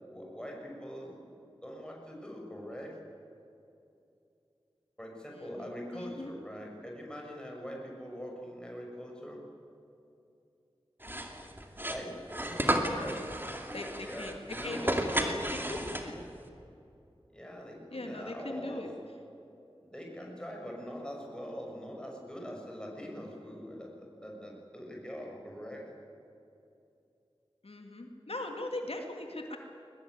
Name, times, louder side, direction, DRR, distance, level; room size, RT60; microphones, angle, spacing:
voice 1, 0.1-1.2 1.6-2.9 5.0-9.4 11.7-13.3 14.0-15.4 17.3-18.9 19.8-25.9, equal, 10° left, -1 dB, 6.3 m, -43 dB
voice 2, 5.3-6.3 12.6-13.1 13.7-14.3 14.6-16.2 17.9-18.9 27.6-29.6, left 2 dB, 80° left, 3 dB, 2.2 m, -40 dB
sound 1, 11.0-16.4, right 1 dB, 20° right, 2.5 m, -33 dB
22.0 x 20.0 x 9.5 m, 2.7 s
wide cardioid pair, 50°, 10 cm